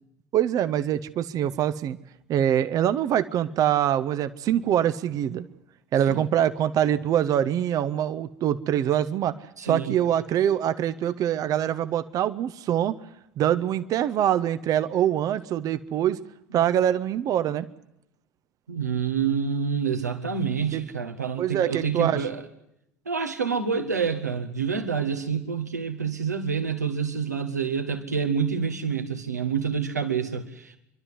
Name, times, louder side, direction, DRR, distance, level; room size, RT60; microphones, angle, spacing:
voice 1, 0.3-2.0 2.3-5.5 5.9-9.4 9.6-12.9 13.4-16.2 16.5-17.7 20.7-20.8 21.4-22.3, right 10 dB, 45° right, 13 dB, 0.9 m, -24 dB
voice 2, 9.6-9.9 18.7-22.4 23.0-30.8, right 6 dB, 80° right, 7 dB, 1.7 m, -27 dB
26.5 x 12.5 x 9.8 m, 0.81 s
figure-of-eight pair, 65°, 9 cm